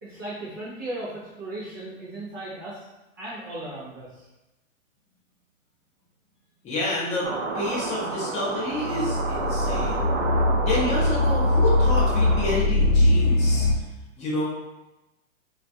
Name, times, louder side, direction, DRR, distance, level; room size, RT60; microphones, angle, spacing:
voice 1, 0.0-2.9 3.2-4.3, right 1 dB, 20° right, -7 dB, 0.3 m, -36 dB
voice 2, 6.6-10.1 10.7-13.9 14.2-14.4, left 1 dB, 15° left, -5 dB, 0.7 m, -29 dB
sound 1, 7.2-12.6, right 4 dB, 70° right, 0.6 m, -30 dB
sound 2, 8.7-13.7, left 2 dB, 75° left, 0.7 m, -22 dB
3.0 x 2.3 x 2.6 m, 1.0 s
hypercardioid pair, 130°, 40 cm